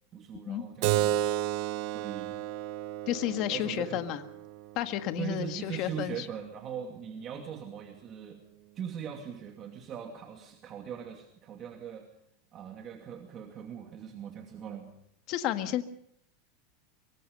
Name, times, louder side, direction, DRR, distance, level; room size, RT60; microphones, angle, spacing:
voice 1, 0.1-1.2 1.9-2.3 3.3-4.0 5.2-8.4 8.8-12.1 12.5-14.9, right 8 dB, 30° right, 2 dB, 2.6 m, -40 dB
Keyboard (musical), 0.8-5.9, right 14 dB, 55° right, 1.2 m, -33 dB
voice 2, 3.1-4.2 4.8-6.3 15.3-15.8, left 12 dB, 45° left, 8 dB, 1.7 m, -31 dB
24.5 x 23.5 x 5.4 m, 0.68 s
supercardioid pair, 145°, 0 cm